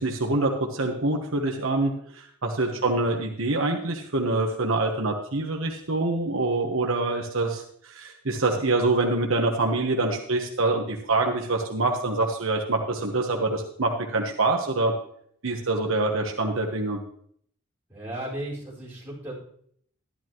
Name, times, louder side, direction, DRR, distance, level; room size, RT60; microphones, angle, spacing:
voice 1, 0.0-14.9 15.4-17.0, right 2 dB, 70° right, 1 dB, 1.2 m, -25 dB
voice 2, 2.7-3.1 15.7-16.5 17.9-19.3, right 1 dB, 10° right, -7 dB, 5.3 m, -37 dB
13.0 x 11.5 x 3.1 m, 0.64 s
head